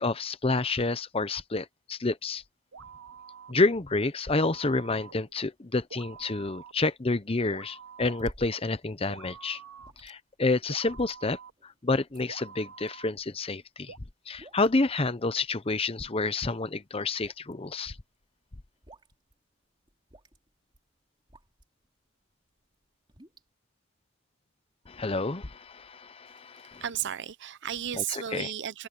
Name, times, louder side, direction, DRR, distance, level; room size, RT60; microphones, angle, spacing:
voice 1, 0.0-2.4 3.5-9.6 10.0-11.4 11.8-13.9 14.3-18.0 24.9-26.8 28.0-28.1 28.3-28.5, left 3 dB, 25° left, 0.7 m, -29 dB
sound 1, 2.7-3.7 4.3-5.4 5.9-6.7 7.5-8.3 9.1-9.9 10.7-11.5 12.3-13.1 13.9-14.0, right 6 dB, 75° right, 1.0 m, -47 dB
sound 2, 3.8-21.9 22.3-23.5, right 1 dB, 20° right, 2.9 m, -54 dB
voice 2, 26.8-28.9, right 10 dB, 55° right, 0.6 m, -33 dB
head